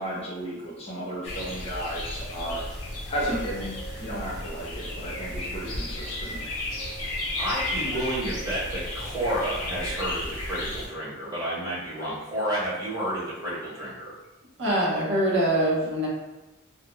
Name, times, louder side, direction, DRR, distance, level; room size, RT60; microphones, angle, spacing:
voice 1, 0.0-2.6 3.1-6.4, right 1 dB, 30° left, -6 dB, 0.5 m, -34 dB
sound 1, 1.2-10.9, left 1 dB, 80° left, 0.6 m, -33 dB
voice 2, 7.4-14.1, right 1 dB, 15° right, -9 dB, 0.9 m, -30 dB
voice 3, 14.6-16.1, right 1 dB, 55° right, -5 dB, 0.6 m, -23 dB
2.1 x 2.0 x 2.9 m, 1.0 s
head